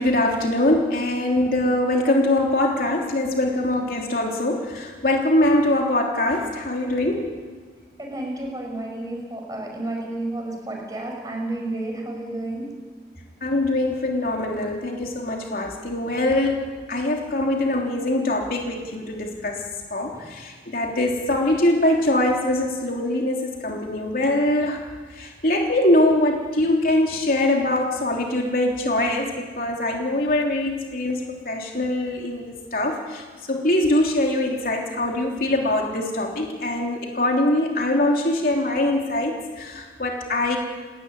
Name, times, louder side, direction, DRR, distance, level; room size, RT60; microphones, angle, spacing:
voice 1, 0.0-7.3 13.4-16.6 16.9-19.6 19.9-24.8 25.1-40.6, left 1 dB, 55° left, 0 dB, 3.3 m, -23 dB
voice 2, 8.0-12.8 20.1-20.3, right 2 dB, 20° right, 1 dB, 6.0 m, -31 dB
29.0 x 13.0 x 10.0 m, 1.5 s
head